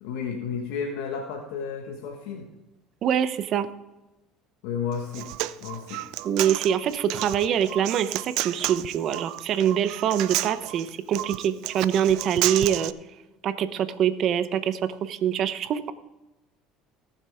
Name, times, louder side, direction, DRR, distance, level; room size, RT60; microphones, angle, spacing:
voice 1, 0.0-2.5 4.6-5.3 5.6-6.0, left 6 dB, 80° left, 1 dB, 1.5 m, -32 dB
voice 2, 3.0-3.7 6.2-12.9 13.4-15.9, right 9 dB, 55° right, 12 dB, 0.9 m, -24 dB
Human voice, 4.9-12.9, right 17 dB, 70° right, 0.4 m, -31 dB
18.5 x 7.4 x 3.6 m, 1.0 s
supercardioid pair, 100°, 0 cm